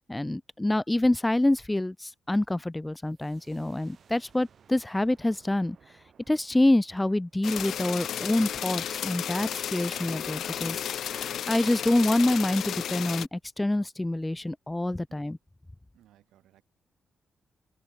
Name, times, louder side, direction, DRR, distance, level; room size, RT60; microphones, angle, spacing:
voice 1, 0.1-5.8 6.3-15.4, left 1 dB, 15° left, 0.7 m, -26 dB
sound 1, 3.0-8.5, right 7 dB, 60° right, 3.1 m, -61 dB
sound 2, 7.4-13.3, left 9 dB, 75° left, 0.3 m, -33 dB
voice 2, 14.9-15.2 15.9-16.6, right 13 dB, 85° right, 2.5 m, -61 dB
supercardioid pair, 60°, 0 cm